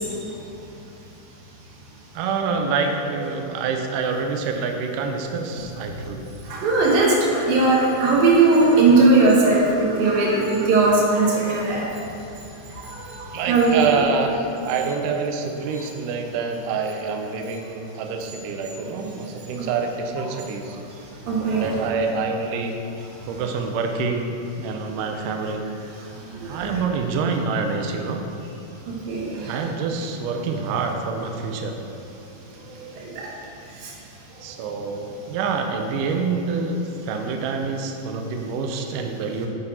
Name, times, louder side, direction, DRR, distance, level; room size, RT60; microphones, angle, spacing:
voice 1, 2.1-6.3 13.3-20.8 21.4-22.7 23.3-24.3 24.6-25.7 26.5-28.2 29.5-31.8 34.4-39.5, right 4 dB, 85° right, 4 dB, 1.8 m, -26 dB
voice 2, 6.5-11.9 13.5-14.0 21.3-21.7 26.3-26.6 29.1-29.2, right 3 dB, 70° right, -3 dB, 3.0 m, -18 dB
8.7 x 6.6 x 4.2 m, 2.8 s
omnidirectional pair, 4.5 m